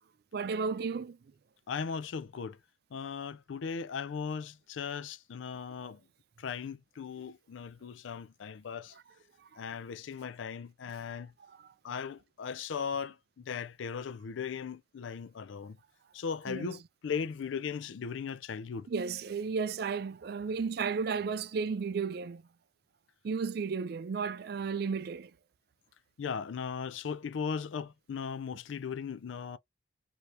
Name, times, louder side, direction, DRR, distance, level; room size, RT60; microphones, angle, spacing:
voice 1, 0.3-1.2 11.5-11.7 16.5-16.8 18.9-22.4 23.2-25.3, right 5 dB, 55° right, 0.4 m, -33 dB
voice 2, 1.7-2.6 2.9-6.0 6.4-8.9 9.6-11.3 11.8-15.8 16.1-18.9 26.2-29.6, left 6 dB, 90° left, 0.4 m, -38 dB
3.3 x 2.9 x 2.5 m
head